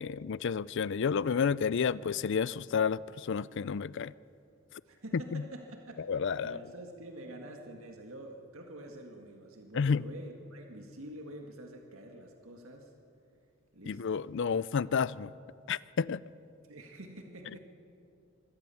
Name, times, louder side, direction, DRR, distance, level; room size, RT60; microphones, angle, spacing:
voice 1, 0.0-4.1 5.3-5.4 6.1-6.6 9.7-10.0 13.9-15.3 15.7-16.2, left 6 dB, 60° left, 0.4 m, -30 dB
voice 2, 4.9-6.0 6.4-12.9 13.7-14.2 16.7-17.6, right 1 dB, 90° right, 1.9 m, -47 dB
24.5 x 16.5 x 7.1 m
head